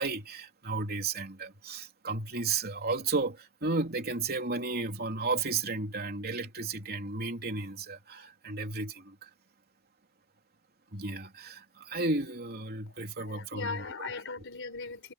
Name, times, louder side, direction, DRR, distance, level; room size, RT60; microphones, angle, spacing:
voice 1, 0.0-9.3 10.9-14.1, right 3 dB, 50° right, 3.3 m, -33 dB
voice 2, 13.2-15.1, left 4 dB, 65° left, 4.3 m, -38 dB
head